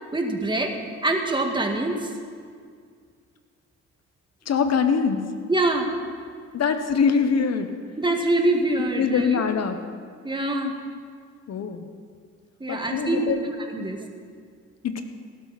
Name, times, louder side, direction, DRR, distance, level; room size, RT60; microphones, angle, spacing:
voice 1, 0.1-0.8 1.0-2.1 5.5-5.9 8.0-9.4 10.2-10.7 12.6-14.1, right 2 dB, 15° right, 2 dB, 1.8 m, -24 dB
voice 2, 4.4-5.2 6.5-7.7 9.0-9.8 11.5-11.9 12.7-13.5 13.8-13.9 14.8-15.0, left 6 dB, 55° left, 8 dB, 1.2 m, -23 dB
17.5 x 12.5 x 4.2 m, 2.1 s
cardioid pair, 90°, 30 cm